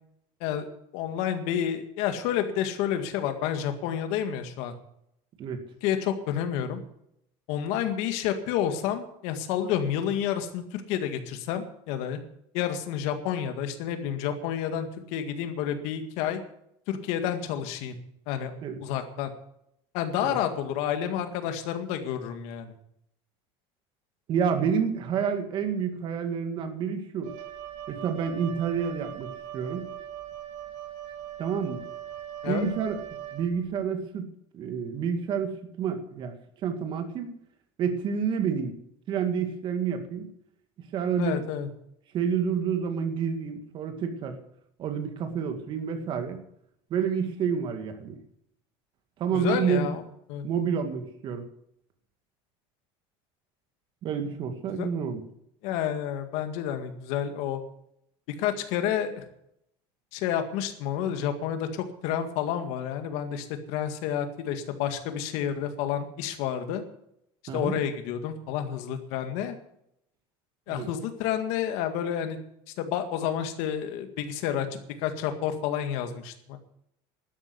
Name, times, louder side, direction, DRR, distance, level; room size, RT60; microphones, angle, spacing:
voice 1, 0.9-4.7 5.8-6.8 7.5-12.2 12.5-16.4 16.9-18.0 18.3-18.5 18.8-19.3 19.9-22.7 32.4-32.7 41.2-41.7 49.3-50.0 50.3-50.5 54.8-54.9 55.6-57.6 58.4-59.2 60.1-66.8 67.5-69.6 70.7-72.4 72.8-76.6, left 9 dB, 70° left, 7 dB, 1.9 m, -30 dB
voice 2, 24.3-27.3 27.9-29.9 31.4-31.8 32.5-33.0 33.3-36.3 36.6-37.3 37.8-38.8 39.1-40.3 40.9-41.4 42.1-44.4 44.8-46.4 46.9-48.2 49.2-49.9 50.4-51.5 54.0-55.2 67.5-67.8 70.7-70.9, right 7 dB, 45° right, 7 dB, 2.1 m, -29 dB
Wind instrument woodwind instrument, 27.2-33.8, right 11 dB, 65° right, 2.7 m, -40 dB
12.5 x 9.6 x 8.2 m, 0.76 s
cardioid pair, 140°, 11 cm